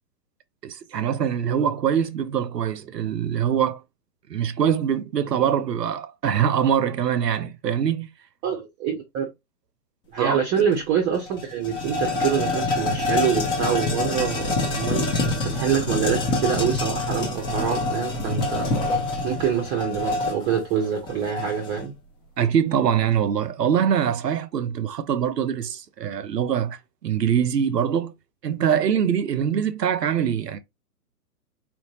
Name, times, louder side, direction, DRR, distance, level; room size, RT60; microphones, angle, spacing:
voice 1, 0.6-3.8 4.3-8.1 10.2-10.7 22.4-28.1 28.4-30.6, right 8 dB, 80° right, 0.8 m, -23 dB
voice 2, 8.4-9.3 10.1-18.9 19.2-21.9, right 7 dB, 20° right, 0.7 m, -26 dB
sound 1, 10.7-10.8 11.1-21.8, left 2 dB, 10° left, 0.5 m, -26 dB
4.4 x 2.6 x 2.8 m
figure-of-eight pair, 120°, 48 cm